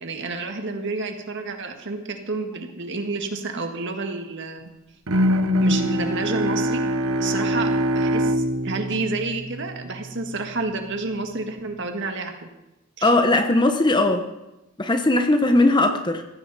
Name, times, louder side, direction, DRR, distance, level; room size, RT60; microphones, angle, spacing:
voice 1, 0.0-4.7 5.6-6.8 7.2-7.7 7.9-12.5 13.0-13.1, right 3 dB, 55° right, 4 dB, 1.8 m, -29 dB
Bowed string instrument, 5.1-10.1, equal, 70° right, 1.0 m, -23 dB
voice 2, 13.0-14.2 14.8-16.2, left 2 dB, 20° left, 7 dB, 1.0 m, -19 dB
16.5 x 15.5 x 4.2 m, 0.97 s
head